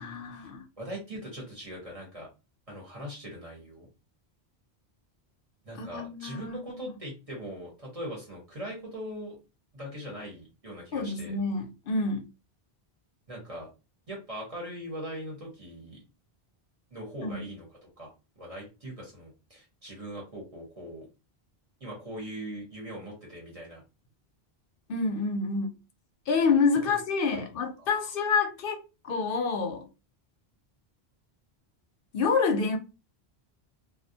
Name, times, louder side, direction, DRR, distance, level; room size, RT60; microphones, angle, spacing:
voice 1, 0.0-0.6 5.8-6.6 10.9-12.2 17.2-17.4 24.9-25.7 26.3-28.8 29.0-29.9 32.1-32.8, left 4 dB, 65° left, 0.7 m, -27 dB
voice 2, 0.8-2.3 2.7-3.9 5.6-9.4 9.7-11.4 13.3-13.7 14.1-16.0 16.9-18.1 18.4-21.1 21.8-23.8 26.9-27.0 27.2-27.4 27.8-28.0, equal, 35° right, 0.9 m, -41 dB
2.3 x 2.1 x 2.6 m
omnidirectional pair, 1.1 m